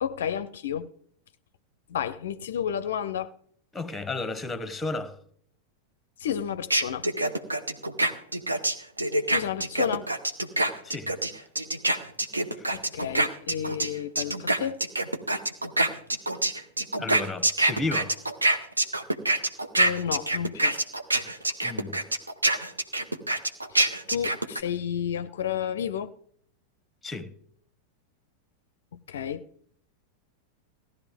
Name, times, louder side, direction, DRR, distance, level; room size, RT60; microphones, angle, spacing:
voice 1, 0.0-0.9 1.9-3.3 6.2-7.1 9.3-10.1 12.7-14.8 19.8-20.7 23.7-26.1 28.9-29.4, left 9 dB, 60° left, 0.4 m, -31 dB
voice 2, 3.7-5.2 10.8-11.1 17.0-18.1 21.6-22.0 27.0-27.3, left 2 dB, 10° left, 1.0 m, -33 dB
sound 1, 6.7-13.9 14.2-24.6, right 2 dB, 80° right, 1.0 m, -25 dB
17.0 x 12.0 x 3.6 m
figure-of-eight pair, 90°, 0 cm